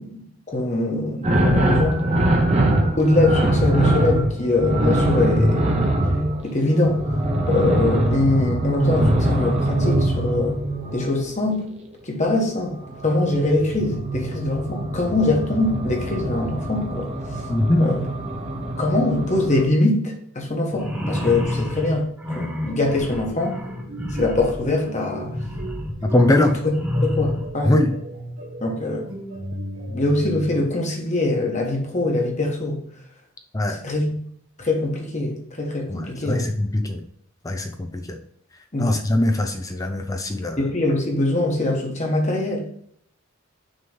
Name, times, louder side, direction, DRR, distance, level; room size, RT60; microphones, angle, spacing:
voice 1, 0.0-2.0 3.0-5.7 6.4-7.2 7.5-10.6 10.9-11.7 12.0-12.7 13.0-17.1 17.8-18.0 18.8-23.6 24.2-25.3 26.4-26.5 27.0-27.7 28.6-29.1 29.9-32.8 33.7-34.1 34.6-36.5 38.7-38.9 40.6-42.6, left 2 dB, 30° left, 1.1 m, -23 dB
sound 1, 1.2-11.2 12.7-19.6, right 1 dB, 30° right, 0.8 m, -23 dB
voice 2, 17.5-17.9 26.0-26.6 27.6-28.0 33.5-33.8 35.9-37.0 37.4-38.2 38.8-40.6, left 1 dB, 15° left, 0.4 m, -21 dB
sound 2, 20.7-27.5, left 1 dB, 10° right, 1.3 m, -29 dB
sound 3, 23.1-30.6, right 1 dB, 70° right, 1.1 m, -36 dB
6.3 x 3.1 x 5.4 m
head